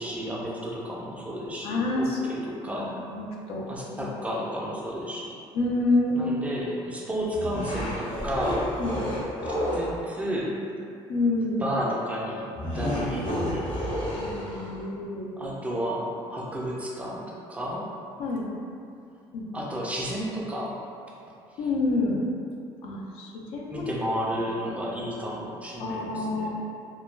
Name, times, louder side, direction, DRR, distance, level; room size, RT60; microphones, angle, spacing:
voice 1, 0.0-2.9 3.7-5.3 6.1-8.8 9.5-10.6 11.6-13.2 13.5-13.7 15.4-17.9 19.5-20.8 21.5-21.6 23.7-26.5, equal, 15° right, -4 dB, 0.4 m, -32 dB
voice 2, 1.6-2.2 2.6-4.2 5.5-6.3 8.8-9.0 11.1-11.6 14.2-15.4 18.2-18.5 19.3-19.5 21.6-22.2 22.8-23.9 25.8-26.5, left 2 dB, 70° left, -2 dB, 0.4 m, -28 dB
sound 1, 7.3-10.0 12.6-14.9, equal, 50° left, 0.8 m, -30 dB
2.2 x 2.1 x 3.1 m, 2.5 s
cardioid pair, 130°, 10 cm